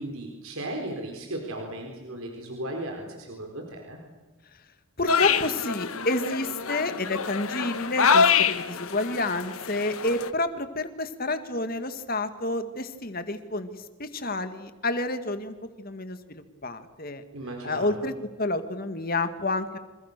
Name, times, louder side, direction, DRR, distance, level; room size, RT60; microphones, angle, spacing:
voice 1, 0.0-4.0 17.3-18.1, right 1 dB, 75° right, 2 dB, 4.6 m, -36 dB
voice 2, 5.0-17.2 17.6-18.1 18.4-19.8, left 2 dB, 40° left, 9 dB, 2.1 m, -29 dB
sound 1, 5.1-10.3, left 6 dB, 75° left, 1.3 m, -26 dB
27.5 x 27.0 x 6.8 m, 1.3 s
head